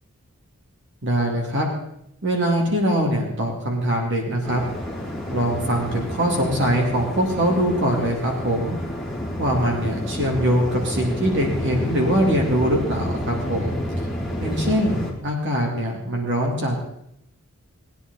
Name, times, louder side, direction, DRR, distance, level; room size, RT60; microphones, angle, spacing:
voice 1, 1.0-1.7 2.2-4.6 5.3-8.8 9.4-13.7 14.4-16.9, equal, 55° right, -1 dB, 2.8 m, -22 dB
Waves surf, 4.4-15.1, equal, ahead, 2.7 m, -30 dB
20.0 x 10.0 x 4.1 m, 0.75 s
head